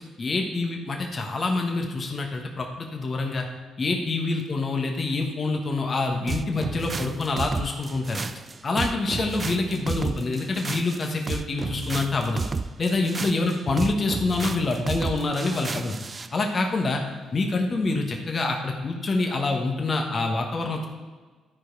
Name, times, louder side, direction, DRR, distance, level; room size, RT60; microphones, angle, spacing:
voice 1, 0.2-3.5 3.8-8.2 8.6-12.4 12.8-16.0 16.3-17.0 17.3-20.9, left 3 dB, 40° left, 2 dB, 1.1 m, -26 dB
sound 1, 6.3-16.3, right 4 dB, 35° right, 0.4 m, -32 dB
11.0 x 4.8 x 4.6 m, 1.4 s
supercardioid pair, 55°, 0 cm